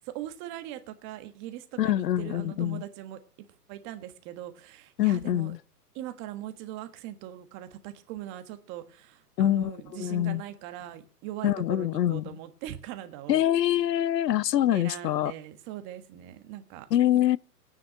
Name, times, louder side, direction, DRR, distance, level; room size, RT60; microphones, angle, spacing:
voice 1, 0.0-5.5 5.9-13.4 14.7-16.9, right 13 dB, 25° right, 1.5 m, -41 dB
voice 2, 1.8-2.8 5.0-5.6 9.4-10.4 11.4-12.2 13.3-15.3 16.9-17.4, left 12 dB, 90° left, 0.6 m, -25 dB
17.5 x 9.7 x 6.4 m
hypercardioid pair, 150°, 48 cm